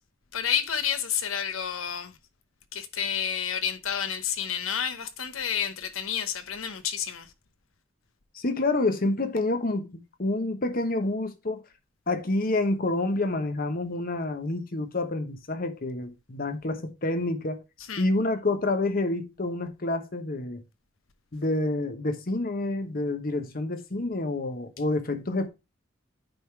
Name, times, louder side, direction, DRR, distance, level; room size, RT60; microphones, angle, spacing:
voice 1, 0.3-2.1 2.7-7.3 17.9-18.1, left 8 dB, 80° left, 0.9 m, -30 dB
voice 2, 8.3-11.6 12.1-17.6 18.0-20.6 21.3-25.5, left 2 dB, 45° left, 1.0 m, -28 dB
9.1 x 3.7 x 4.5 m
head